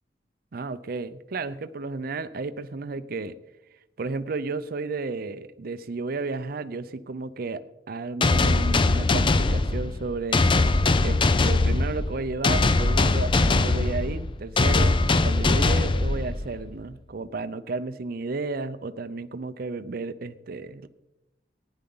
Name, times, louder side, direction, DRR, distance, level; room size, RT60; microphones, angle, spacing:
voice 1, 0.5-3.3 4.0-10.4 11.0-15.0 15.2-20.9, right 3 dB, 55° right, 12 dB, 0.5 m, -33 dB
sound 1, 8.2-16.7, left 3 dB, 30° left, 0.5 m, -22 dB
15.0 x 9.8 x 3.8 m, 0.95 s
head